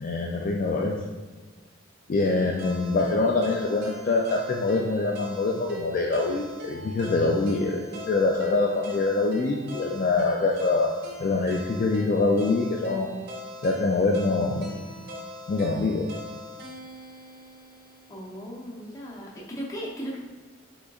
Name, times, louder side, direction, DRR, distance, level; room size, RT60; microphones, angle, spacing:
voice 1, 0.0-1.0 2.1-10.9 11.2-13.1 13.6-14.9 15.5-16.1, left 3 dB, 45° left, 0 dB, 0.3 m, -25 dB
sound 1, 2.2-18.3, equal, 55° right, 0.6 m, -41 dB
voice 2, 18.1-20.2, equal, 15° left, -5 dB, 0.8 m, -37 dB
5.0 x 3.8 x 2.4 m, 1.4 s
head